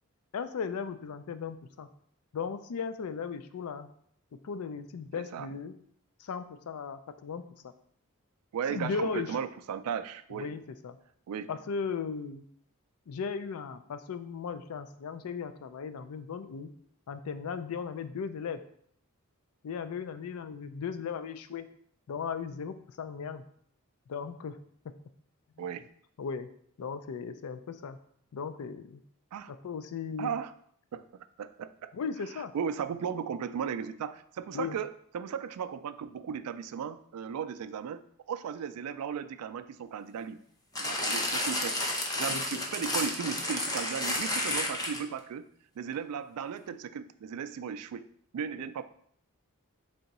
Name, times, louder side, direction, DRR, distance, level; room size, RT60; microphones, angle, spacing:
voice 1, 0.3-1.9 2.3-3.9 4.4-5.7 6.2-7.7 8.7-9.4 10.3-11.0 11.5-12.4 13.1-16.7 17.1-18.6 19.6-21.7 22.1-23.4 24.1-24.6 24.8-24.9 26.2-26.5 26.8-28.0 28.3-29.0 29.5-30.3 31.9-32.5 34.5-34.8 42.3-42.6, left 6 dB, 70° left, 11 dB, 0.4 m, -37 dB
voice 2, 8.5-10.5 11.3-11.5 25.6-25.9 29.3-29.5 30.2-30.5 30.9-31.7 32.3-38.0 38.3-40.4 40.8-41.8 42.2-45.5 45.8-48.1 48.3-48.8, right 7 dB, 80° right, 11 dB, 0.3 m, -36 dB
sound 1, 40.8-45.2 45.9-46.0, left 1 dB, 15° left, 0.7 m, -31 dB
3.8 x 3.4 x 4.1 m, 0.64 s
head